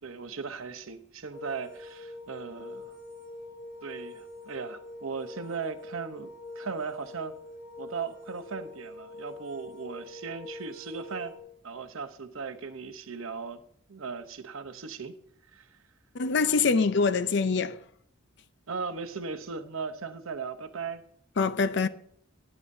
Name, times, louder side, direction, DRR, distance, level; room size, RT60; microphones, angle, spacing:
voice 1, 0.0-2.9 3.8-7.3 7.8-11.3 11.6-13.6 13.9-15.1 15.5-15.7 18.7-21.0, right 5 dB, 85° right, 0.8 m, -37 dB
sound 1, 1.3-11.4, left 2 dB, 5° right, 5.5 m, -44 dB
voice 2, 16.2-17.8 21.4-21.9, left 4 dB, 55° left, 0.5 m, -24 dB
17.5 x 9.8 x 2.7 m
head